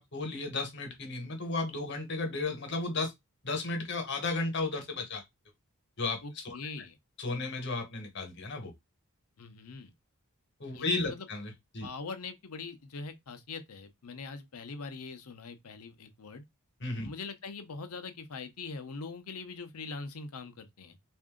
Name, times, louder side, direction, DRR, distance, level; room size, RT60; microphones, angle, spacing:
voice 1, 0.0-3.1 3.4-5.2 6.0-6.6 7.2-8.7 10.6-11.9 16.8-17.1, left 3 dB, 50° left, 1.1 m, -34 dB
voice 2, 6.2-7.0 9.4-9.9 10.7-11.3 11.8-16.4 17.0-21.0, left 4 dB, 80° left, 0.7 m, -42 dB
3.6 x 2.6 x 3.7 m
head